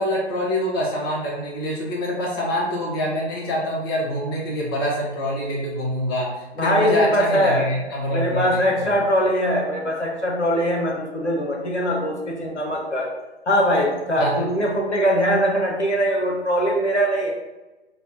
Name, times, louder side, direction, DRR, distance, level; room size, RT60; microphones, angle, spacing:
voice 1, 0.0-9.0 14.2-14.4, equal, 20° left, -4 dB, 0.5 m, -25 dB
voice 2, 6.6-7.6 8.1-13.1 13.5-17.3, equal, 90° left, -2 dB, 0.9 m, -21 dB
3.2 x 2.1 x 2.5 m, 1.1 s
figure-of-eight pair, 120°, 33 cm